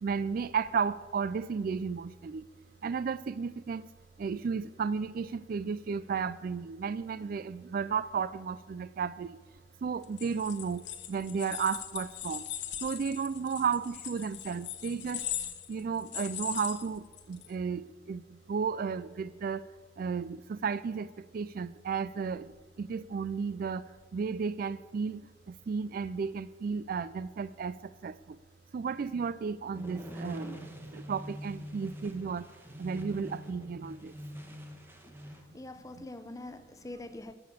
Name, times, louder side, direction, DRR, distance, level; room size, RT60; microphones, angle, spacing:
voice 1, 0.0-2.4 2.8-3.9 4.2-9.4 9.8-12.5 12.8-19.7 20.0-28.4 28.7-30.6 30.9-32.5 32.8-34.1 36.0-36.1, right 6 dB, 50° right, 0.3 m, -34 dB
sound 1, 10.0-17.5, left 11 dB, 65° left, 1.2 m, -40 dB
sound 2, 29.7-35.4, equal, 10° right, 1.3 m, -44 dB
voice 2, 35.5-37.3, left 2 dB, 20° left, 0.6 m, -44 dB
13.5 x 6.8 x 8.4 m
head